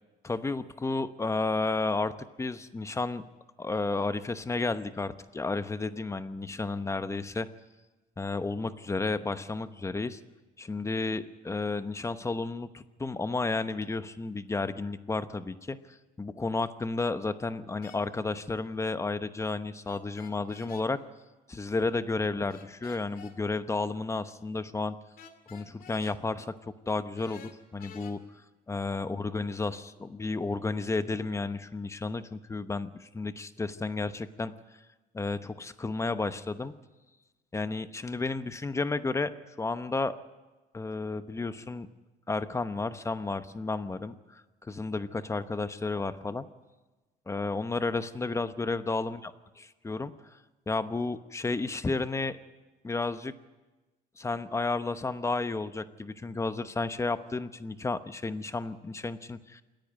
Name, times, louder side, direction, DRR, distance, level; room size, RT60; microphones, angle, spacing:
voice 1, 0.2-2.1 2.4-3.2 3.6-7.5 8.2-10.2 10.6-21.0 21.5-25.0 25.5-28.2 28.7-34.5 35.1-36.7 37.5-40.1 40.7-41.9 42.3-46.5 47.3-49.3 49.6-50.4 50.7-52.4 52.8-53.3 54.2-59.6, left 3 dB, 15° left, 11 dB, 0.9 m, -32 dB
sound 1, 17.8-18.0 19.8-20.9 22.5-23.4 25.2-26.2 27.2-28.1, left 7 dB, 60° left, 2.3 m, -51 dB
27.5 x 10.5 x 9.6 m, 1.2 s
cardioid pair, 110°, 17 cm